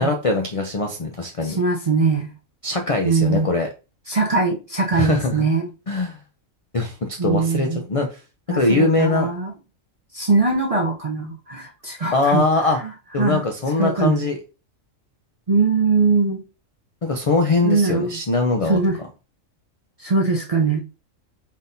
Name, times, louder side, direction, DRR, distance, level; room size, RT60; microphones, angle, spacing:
voice 1, 0.0-1.6 2.6-3.7 4.9-5.4 5.9-6.2 6.7-8.2 8.5-9.3 12.1-12.8 13.1-14.4 17.0-18.8, left 3 dB, 65° left, 0.3 m, -21 dB
voice 2, 1.4-2.3 3.0-3.5 4.1-5.7 7.2-7.8 8.5-9.5 10.1-12.9 13.2-13.4 13.8-14.2 15.5-16.4 17.6-18.2 18.6-19.0 20.0-20.8, right 4 dB, 40° right, 0.5 m, -21 dB
4.1 x 3.7 x 2.6 m
omnidirectional pair, 1.4 m